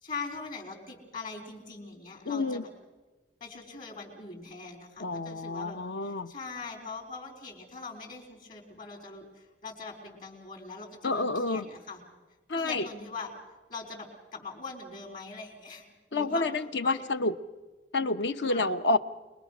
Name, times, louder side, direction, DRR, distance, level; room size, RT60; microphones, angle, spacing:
voice 1, 0.0-2.7 3.4-5.8 6.0-12.0 12.6-13.3 13.7-16.4 16.8-17.0 18.5-18.7, left 4 dB, 55° left, 0 dB, 4.2 m, -42 dB
voice 2, 2.2-2.6 5.0-6.3 11.0-11.7 12.5-12.9 16.1-17.3 17.9-19.0, left 3 dB, 75° left, 11 dB, 0.9 m, -29 dB
26.5 x 21.0 x 6.1 m, 1.2 s
head